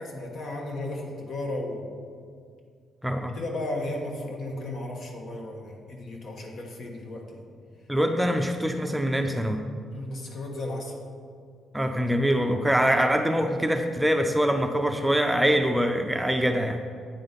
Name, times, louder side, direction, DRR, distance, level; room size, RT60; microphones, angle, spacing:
voice 1, 0.0-1.9 3.3-7.4 9.9-11.0, left 1 dB, 60° left, 0 dB, 1.3 m, -34 dB
voice 2, 3.0-3.4 7.9-9.6 11.7-16.8, equal, 5° right, 5 dB, 0.5 m, -24 dB
8.7 x 3.9 x 5.2 m, 2.1 s
cardioid pair, 90°, 0 cm